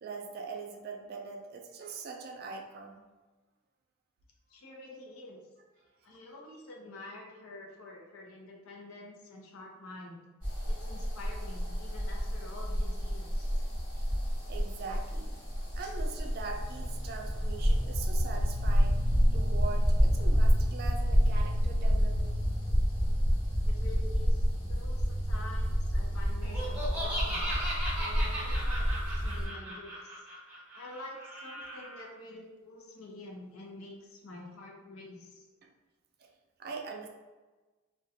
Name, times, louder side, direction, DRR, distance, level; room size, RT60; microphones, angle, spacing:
voice 1, 0.0-3.0 14.5-15.3 15.8-19.0 19.3-22.4 36.2-36.3 36.6-37.1, right 4 dB, 45° right, 2 dB, 0.3 m, -42 dB
voice 2, 4.5-5.4 6.0-10.2 10.7-13.5 23.6-30.3 30.7-35.5, left 2 dB, 85° left, 0 dB, 0.6 m, -48 dB
sound 1, 10.4-29.5, equal, 35° left, 0.9 m, -29 dB
Laughter, 26.4-32.0, equal, 10° right, 0.6 m, -37 dB
2.4 x 2.1 x 2.7 m, 1.2 s
head